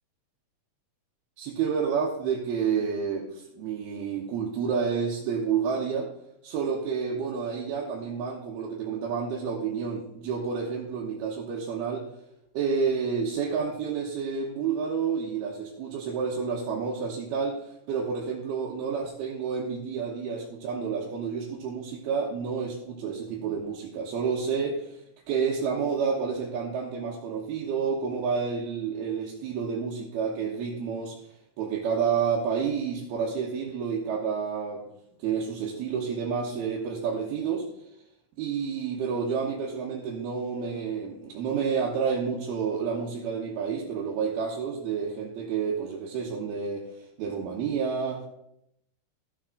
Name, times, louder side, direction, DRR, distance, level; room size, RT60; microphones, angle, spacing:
voice 1, 1.4-6.1 6.4-12.1 12.5-25.0 25.3-31.2 31.6-37.6 38.4-48.3, right 6 dB, 90° right, -4 dB, 3.1 m, -29 dB
14.0 x 7.3 x 3.8 m, 0.78 s
omnidirectional pair, 4.4 m